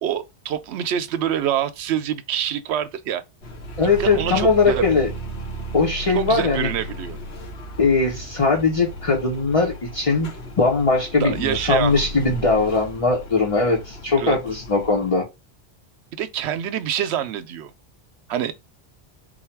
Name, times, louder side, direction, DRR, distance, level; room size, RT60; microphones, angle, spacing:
voice 1, 0.0-3.2 4.0-4.8 6.1-7.2 11.2-12.0 14.2-14.4 16.2-17.7 18.3-18.5, right 9 dB, 85° right, 0.8 m, -25 dB
sound 1, 3.4-15.2, right 1 dB, 85° left, 1.5 m, -35 dB
voice 2, 3.8-5.1 5.7-6.7 7.8-10.3 10.6-15.3, left 4 dB, 35° left, 0.9 m, -20 dB
3.9 x 2.3 x 4.5 m
omnidirectional pair, 1.1 m